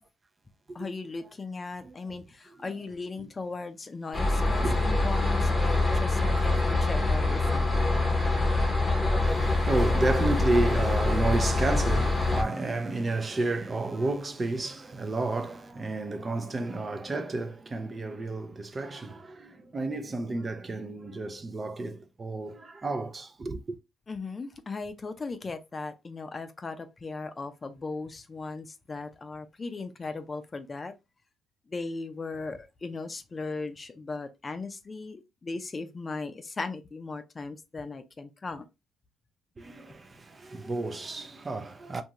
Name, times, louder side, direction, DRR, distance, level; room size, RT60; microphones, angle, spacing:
voice 1, 0.7-7.9 24.1-30.9 31.7-38.6, left 3 dB, 30° left, 0.5 m, -37 dB
voice 2, 1.8-2.8 3.2-3.3 4.4-4.9 9.2-23.8 39.6-42.0, right 2 dB, 30° right, 0.4 m, -31 dB
sound 1, 4.1-12.4, left 2 dB, 10° left, 0.8 m, -25 dB
2.6 x 2.4 x 2.9 m
cardioid pair, 90°, 0 cm